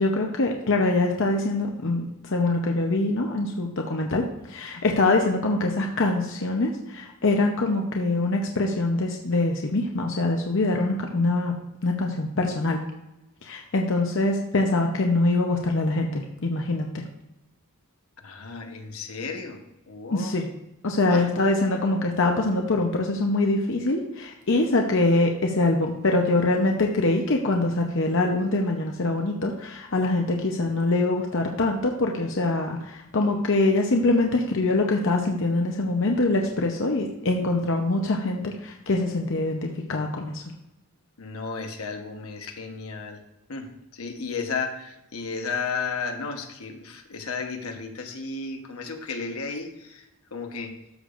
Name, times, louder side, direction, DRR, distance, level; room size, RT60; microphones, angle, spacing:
voice 1, 0.0-11.6 11.8-12.8 13.4-17.0 20.1-20.5 20.8-40.4, left 2 dB, 60° left, 2 dB, 0.8 m, -24 dB
voice 2, 18.2-19.6 19.9-20.4 21.1-21.3 41.2-43.2 43.5-50.8, left 4 dB, 80° left, 4 dB, 1.1 m, -33 dB
13.0 x 6.7 x 2.5 m, 0.91 s
head